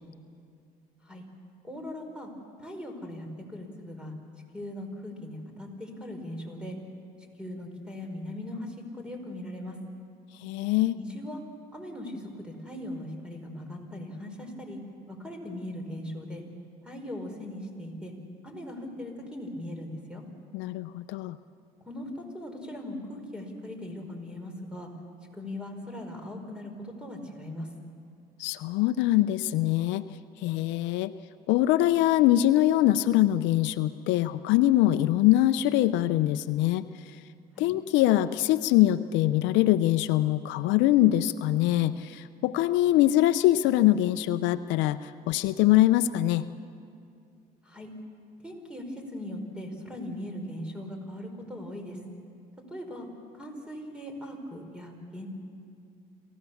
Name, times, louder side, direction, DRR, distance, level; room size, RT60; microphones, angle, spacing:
voice 1, 1.6-2.3 2.6-4.1 4.5-6.8 7.4-9.8 10.9-11.4 11.7-14.8 15.1-16.4 16.8-18.1 18.4-20.2 21.8-24.9 25.3-27.7 37.5-37.7 47.6-47.9 48.4-52.0 52.7-53.1 53.3-55.3, left 1 dB, 5° right, 3 dB, 4.9 m, -39 dB
voice 2, 10.4-11.0 20.5-21.4 28.4-30.1 30.4-31.1 31.5-36.8 37.6-46.5, left 14 dB, 80° left, 13 dB, 0.6 m, -23 dB
28.0 x 15.0 x 7.1 m, 2.4 s
supercardioid pair, 80°, 19 cm